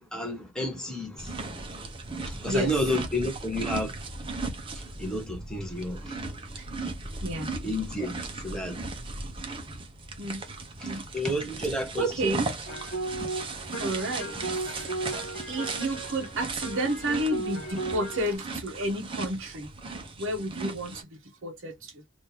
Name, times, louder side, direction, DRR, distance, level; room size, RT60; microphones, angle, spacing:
voice 1, 0.1-1.4 2.3-3.9 5.0-6.1 7.6-8.2 8.4-8.8 11.1-12.1, left 1 dB, 5° left, 1.2 m, -30 dB
sound 1, 1.2-21.0, right 3 dB, 25° right, 0.8 m, -37 dB
voice 2, 2.5-2.9 6.5-6.7 7.2-7.5 10.2-10.4 10.8-11.0 12.0-12.5 13.8-14.4 15.5-22.0, right 1 dB, 65° right, 0.9 m, -31 dB
sound 2, 12.7-18.4, right 2 dB, 55° left, 1.6 m, -36 dB
3.5 x 2.6 x 2.9 m
head